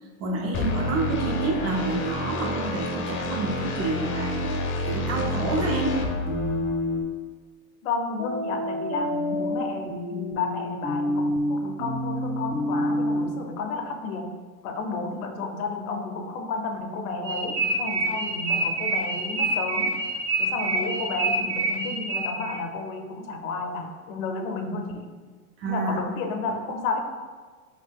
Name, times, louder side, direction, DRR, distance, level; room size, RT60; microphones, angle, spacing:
voice 1, 0.2-4.6 4.9-6.0 25.6-26.0, right 3 dB, 35° right, 2 dB, 0.4 m, -28 dB
sound 1, 0.5-7.0, left 1 dB, 30° left, 0.4 m, -29 dB
sound 2, 6.3-7.1 8.2-13.2, left 1 dB, 90° right, 1.1 m, -28 dB
voice 2, 7.8-14.3 14.6-19.9 20.4-25.1 25.7-27.0, left 3 dB, 70° left, 5 dB, 0.6 m, -31 dB
sound 3, 17.2-22.5, right 2 dB, 70° right, 1.2 m, -26 dB
2.8 x 2.7 x 3.4 m, 1.5 s
hypercardioid pair, 105°, 43 cm